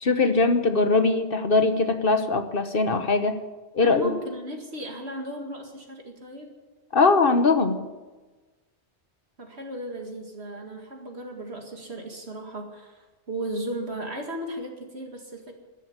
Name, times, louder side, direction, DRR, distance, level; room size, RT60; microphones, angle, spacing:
voice 1, 0.0-3.4 3.7-4.1 6.9-7.9, left 3 dB, 55° left, 9 dB, 1.3 m, -21 dB
voice 2, 3.8-6.5 9.4-15.5, right 1 dB, 70° right, 2 dB, 2.4 m, -35 dB
13.5 x 11.0 x 9.7 m, 1.2 s
omnidirectional pair, 1.1 m